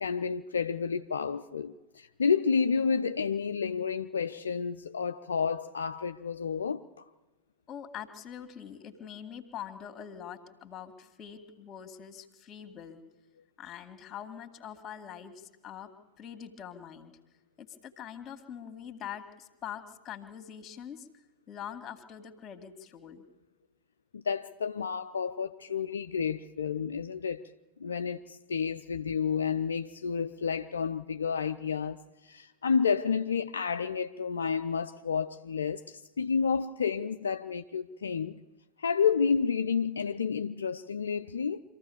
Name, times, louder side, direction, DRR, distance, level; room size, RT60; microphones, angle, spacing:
voice 1, 0.0-6.9 24.1-27.4 27.8-38.4 38.8-41.6, left 6 dB, 70° left, 8 dB, 0.5 m, -30 dB
voice 2, 7.7-13.0 13.6-15.9 16.2-17.1 17.6-21.1 21.5-23.3, left 9 dB, 25° left, 8 dB, 2.1 m, -44 dB
25.5 x 14.5 x 7.0 m, 1.2 s
figure-of-eight pair, 90°, 0 cm